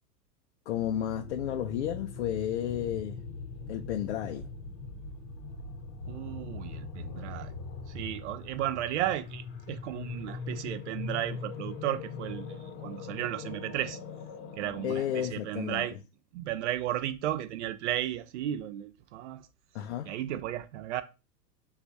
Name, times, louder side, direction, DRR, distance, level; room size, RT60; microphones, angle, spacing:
voice 1, 0.7-3.2 3.7-4.5 14.8-15.8 19.7-20.1, left 10 dB, 45° left, 0.5 m, -32 dB
sound 1, 0.7-15.2, left 4 dB, 25° left, 0.9 m, -41 dB
voice 2, 6.1-7.5 7.9-14.0 14.6-16.0 16.3-19.5 20.0-21.0, right 12 dB, 45° right, 0.6 m, -34 dB
6.6 x 2.4 x 2.6 m
hypercardioid pair, 105°, 49 cm